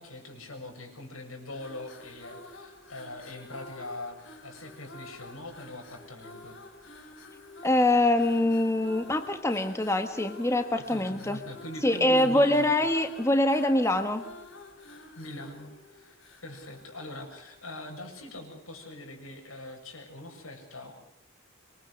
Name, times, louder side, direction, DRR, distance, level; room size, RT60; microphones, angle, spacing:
voice 1, 0.0-6.6 10.8-12.8 15.2-20.9, left 1 dB, 90° left, 3 dB, 7.6 m, -42 dB
sound 1, 1.5-17.9, left 2 dB, 65° left, 3.5 m, -49 dB
voice 2, 7.6-11.4 11.8-14.3, left 1 dB, 15° left, 7 dB, 1.5 m, -24 dB
26.0 x 23.5 x 6.7 m, 0.74 s
head